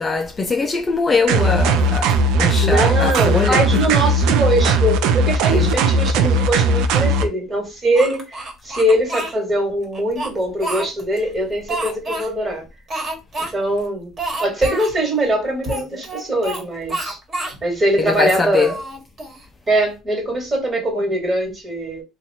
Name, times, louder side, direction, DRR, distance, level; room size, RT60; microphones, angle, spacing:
voice 1, 0.0-3.8 5.5-5.8 18.0-18.8, left 4 dB, 20° left, 0.4 m, -22 dB
sound 1, 1.3-7.3, right 2 dB, 75° right, 0.6 m, -17 dB
voice 2, 2.6-12.6 13.4-14.1 14.4-17.2 17.6-18.7 19.7-22.0, right 1 dB, 20° right, 1.6 m, -21 dB
Speech, 7.9-9.3 9.9-11.2 11.7-12.3 12.9-13.5 13.8-13.9 14.2-14.9 15.6-16.6 16.9-17.6 18.1-19.4, right 2 dB, 35° right, 1.5 m, -28 dB
2.9 x 2.4 x 4.1 m
cardioid pair, 120°, 0 cm